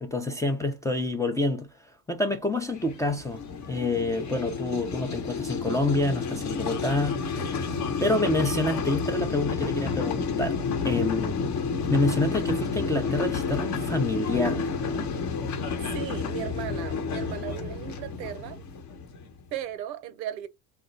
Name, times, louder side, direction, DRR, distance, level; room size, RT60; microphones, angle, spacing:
voice 1, 0.0-1.7 2.1-3.4 3.7-7.7 8.0-11.5 11.9-14.7, left 2 dB, 5° left, 0.3 m, -27 dB
sound 1, 2.7-19.4, left 5 dB, 35° left, 0.8 m, -30 dB
voice 2, 15.9-18.6 19.5-20.5, right 10 dB, 85° right, 0.7 m, -36 dB
3.1 x 2.1 x 3.8 m
hypercardioid pair, 75°, 49 cm